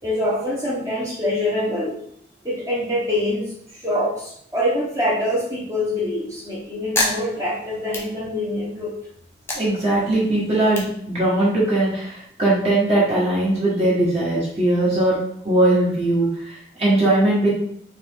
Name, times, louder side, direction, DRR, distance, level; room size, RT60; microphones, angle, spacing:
voice 1, 0.0-1.9 2.4-8.9, left 1 dB, 15° right, -6 dB, 1.0 m, -25 dB
sound 1, 6.3-8.8 9.2-11.8, left 1 dB, 15° left, 0.7 m, -30 dB
voice 2, 9.5-15.2 15.4-17.5, right 1 dB, 35° right, -8 dB, 1.4 m, -20 dB
4.3 x 3.2 x 3.5 m, 0.67 s
head